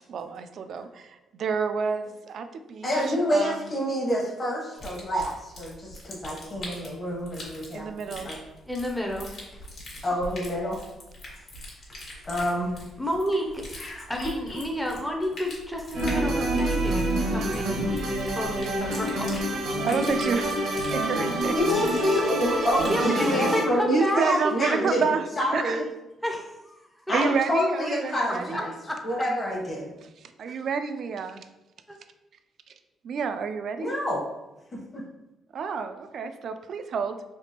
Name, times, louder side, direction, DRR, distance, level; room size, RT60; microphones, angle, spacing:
voice 1, 0.1-3.7 7.7-8.3 19.8-20.5 20.9-21.6 23.9-25.8 27.1-28.7 30.0-31.5 32.7-32.8 33.0-33.9 35.5-37.2, right 5 dB, 60° right, 8 dB, 0.3 m, -29 dB
voice 2, 2.8-7.8 8.2-8.4 10.0-10.8 12.2-12.7 13.8-14.6 17.7-17.9 21.5-25.0 25.4-25.8 27.1-28.7 29.0-29.9 33.8-34.2 34.7-35.0, left 1 dB, 30° left, -4 dB, 1.0 m, -27 dB
sound 1, 4.8-23.0, left 1 dB, 60° left, 1.3 m, -43 dB
voice 3, 8.7-9.3 13.0-13.7 14.1-19.3 22.5-24.9 26.2-27.0 28.3-28.4 28.8-29.0 30.5-30.6 31.9-32.0, equal, ahead, 1 dB, 0.5 m, -31 dB
sound 2, 15.9-23.6, right 1 dB, 85° right, 0.9 m, -27 dB
3.4 x 2.8 x 2.8 m, 1.0 s
cardioid pair, 90°, 0 cm